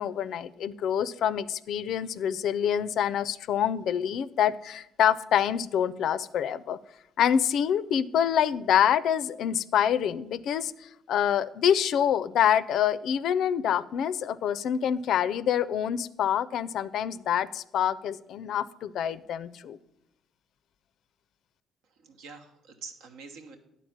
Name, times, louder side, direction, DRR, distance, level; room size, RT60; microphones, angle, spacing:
voice 1, 0.0-6.8 7.2-10.7 11.1-19.8, left 9 dB, 70° left, 15 dB, 0.4 m, -26 dB
voice 2, 21.8-23.6, right 4 dB, 85° right, 4 dB, 1.2 m, -46 dB
9.9 x 4.1 x 7.2 m, 0.85 s
cardioid pair, 105°, 0 cm